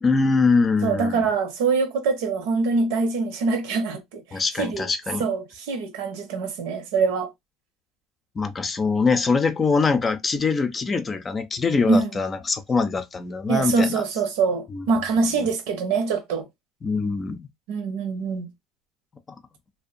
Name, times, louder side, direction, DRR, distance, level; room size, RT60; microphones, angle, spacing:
voice 1, 0.0-1.3 4.3-5.3 8.4-14.0 14.7-14.9 15.3-15.5 16.8-17.4, left 4 dB, 30° left, 0.5 m, -23 dB
voice 2, 0.8-4.9 5.2-7.3 11.9-12.1 13.5-16.5 17.7-18.5, right 4 dB, 80° right, 0.8 m, -24 dB
2.6 x 2.1 x 2.6 m
supercardioid pair, 95°, 0 cm